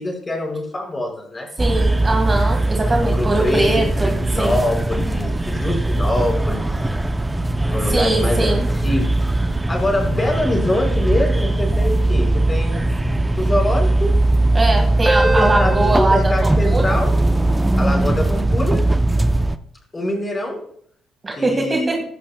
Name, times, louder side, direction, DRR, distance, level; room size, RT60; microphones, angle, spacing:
voice 1, 0.0-1.5 3.0-6.7 7.7-9.1 9.7-12.8 13.4-14.1 15.2-17.1 17.8-18.8 19.9-20.6 21.4-22.0, left 1 dB, 25° left, 0 dB, 5.0 m, -24 dB
sound 1, 1.6-19.6, right 2 dB, 10° right, 0.6 m, -19 dB
voice 2, 1.6-4.6 7.9-8.6 14.5-17.0 21.2-22.0, right 2 dB, 30° right, 2 dB, 1.8 m, -21 dB
15.5 x 11.5 x 2.3 m, 0.65 s
cardioid pair, 90°, 0 cm